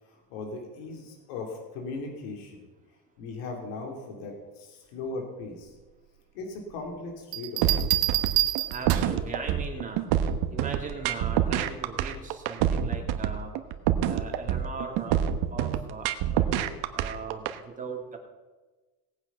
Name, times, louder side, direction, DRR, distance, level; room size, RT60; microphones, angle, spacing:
voice 1, 0.1-2.6 3.2-5.7 6.3-7.8, left 3 dB, 80° left, 1 dB, 3.1 m, -38 dB
Bell, 7.3-9.3 10.9-11.2, right 16 dB, 80° right, 1.4 m, -27 dB
sound 1, 7.6-17.5, right 10 dB, 60° right, 1.2 m, -26 dB
voice 2, 8.7-10.0 10.5-13.5 14.0-15.2 15.5-16.1 16.3-18.2, right 4 dB, 20° right, 1 dB, 2.6 m, -39 dB
18.5 x 8.8 x 5.5 m, 1.2 s
cardioid pair, 135°, 43 cm